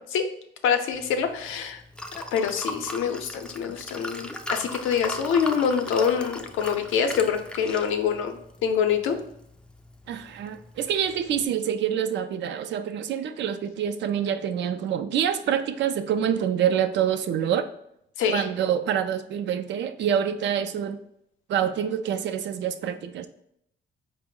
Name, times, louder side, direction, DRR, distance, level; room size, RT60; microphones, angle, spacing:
voice 1, 0.6-1.8 2.3-8.4 8.6-9.2 18.2-18.5, left 7 dB, 85° left, 6 dB, 0.5 m, -25 dB
Liquid, 0.9-11.5, left 1 dB, 5° left, 0.3 m, -39 dB
voice 2, 10.1-17.7 18.3-21.0 21.5-23.3, right 9 dB, 65° right, 10 dB, 0.4 m, -26 dB
4.4 x 2.0 x 3.7 m, 0.76 s
cardioid pair, 90°, 20 cm